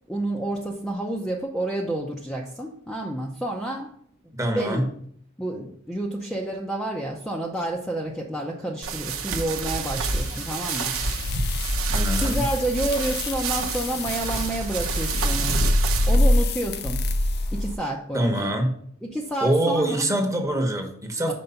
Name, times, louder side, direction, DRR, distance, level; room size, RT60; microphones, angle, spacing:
voice 1, 0.1-3.9 4.5-4.9 5.4-11.5 12.2-15.7 16.1-17.0 17.5-18.5 19.0-20.1 21.3-21.4, right 1 dB, ahead, -2 dB, 0.6 m, -29 dB
voice 2, 4.4-4.9 11.9-12.5 18.1-18.7 19.4-21.3, right 1 dB, 15° right, 3 dB, 1.0 m, -24 dB
sound 1, 8.8-16.2, right 4 dB, 70° right, 0.8 m, -29 dB
sound 2, 9.9-17.8, left 1 dB, 50° left, 0.5 m, -25 dB
5.3 x 4.5 x 5.7 m, 0.63 s
head